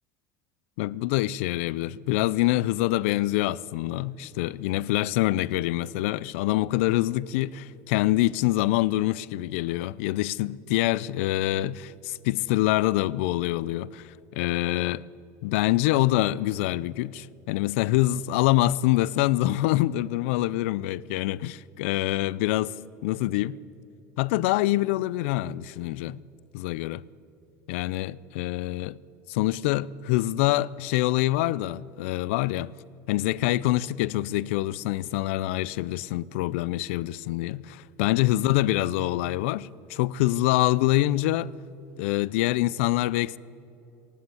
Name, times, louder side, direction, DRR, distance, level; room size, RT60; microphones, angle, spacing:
voice 1, 0.8-15.1 15.4-22.8 23.0-23.6 24.2-26.2 26.5-27.0 27.7-29.0 29.3-32.7 33.1-41.5 42.0-43.4, left 16 dB, 85° left, 0.4 m, -25 dB
16.0 x 11.5 x 7.0 m
cardioid pair, 150°, 7 cm